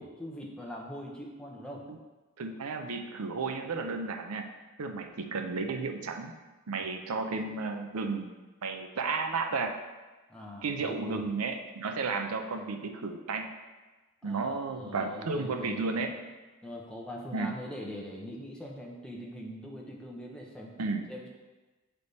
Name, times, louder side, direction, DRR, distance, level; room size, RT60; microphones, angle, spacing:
voice 1, 0.0-1.8 10.3-11.3 14.2-16.0 16.6-20.8 21.1-21.3, equal, 5° left, -2 dB, 0.8 m, -42 dB
voice 2, 2.4-4.5 4.8-6.3 6.7-8.3 8.6-9.7 10.6-13.5 14.2-16.1 17.3-17.5 20.8-21.1, right 4 dB, 85° right, 5 dB, 0.6 m, -33 dB
8.2 x 3.4 x 4.0 m, 1.2 s
head